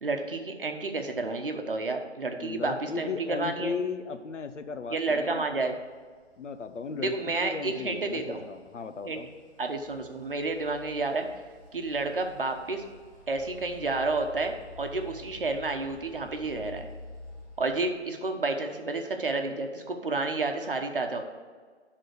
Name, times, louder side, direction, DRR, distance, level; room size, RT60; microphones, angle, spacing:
voice 1, 0.0-3.7 4.9-5.7 7.0-8.4 9.0-9.2 9.6-11.3 11.7-12.8 13.3-16.9 17.6-21.2, right 3 dB, 50° right, 4 dB, 1.0 m, -30 dB
voice 2, 2.4-5.4 6.4-9.3, left 5 dB, 85° left, 9 dB, 0.9 m, -36 dB
sound 1, 4.0-18.5, left 3 dB, 30° left, 2.5 m, -51 dB
11.0 x 3.8 x 6.6 m, 1.5 s
hypercardioid pair, 180°, 35 cm